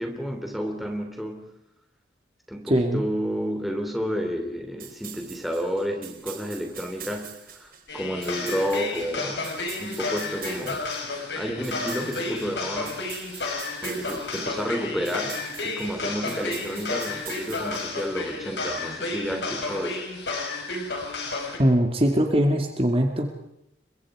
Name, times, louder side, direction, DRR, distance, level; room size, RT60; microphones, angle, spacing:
voice 1, 0.0-1.5 2.5-9.5 9.8-10.9 11.3-13.1 13.8-20.0, equal, ahead, 3 dB, 3.1 m, -31 dB
voice 2, 2.7-3.0 21.6-23.3, equal, 30° right, 3 dB, 2.3 m, -21 dB
sound 1, 4.8-18.3, right 9 dB, 50° right, 4.5 m, -44 dB
sound 2, 7.9-21.6, left 3 dB, 80° left, 5.2 m, -32 dB
30.0 x 23.0 x 4.9 m, 0.84 s
head